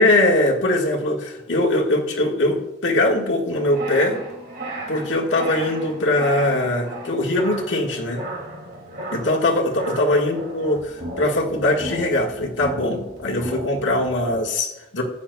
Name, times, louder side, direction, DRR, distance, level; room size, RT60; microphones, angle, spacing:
voice 1, 0.0-4.2 4.9-8.2 9.1-15.0, left 1 dB, 70° left, -1 dB, 1.6 m, -21 dB
sound 1, 3.5-14.4, right 1 dB, 50° right, 2.4 m, -35 dB
14.5 x 9.4 x 2.3 m, 0.94 s
head